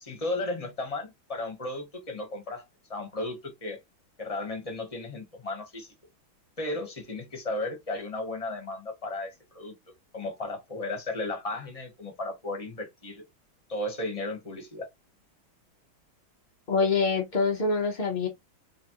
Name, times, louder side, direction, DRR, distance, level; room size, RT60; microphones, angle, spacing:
voice 1, 0.0-2.6 2.9-3.8 4.2-5.9 6.6-9.7 10.1-13.2 13.7-14.9, left 2 dB, 25° left, 0.8 m, -34 dB
voice 2, 16.7-18.3, left 4 dB, 80° left, 0.4 m, -25 dB
4.0 x 3.4 x 2.9 m
omnidirectional pair, 2.2 m